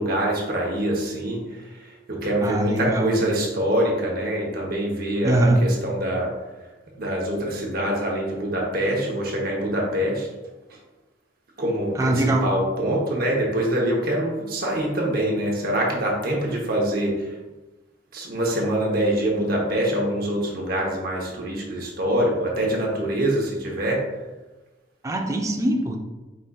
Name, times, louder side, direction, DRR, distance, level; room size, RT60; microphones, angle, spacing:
voice 1, 0.0-1.4 2.1-6.3 7.0-10.3 11.6-17.3 18.1-24.1, right 1 dB, 55° right, -2 dB, 0.9 m, -24 dB
voice 2, 2.4-3.1 5.2-5.6 12.0-12.5 25.0-26.0, right 1 dB, 20° right, 2 dB, 0.5 m, -22 dB
5.0 x 3.8 x 2.3 m, 1.1 s
head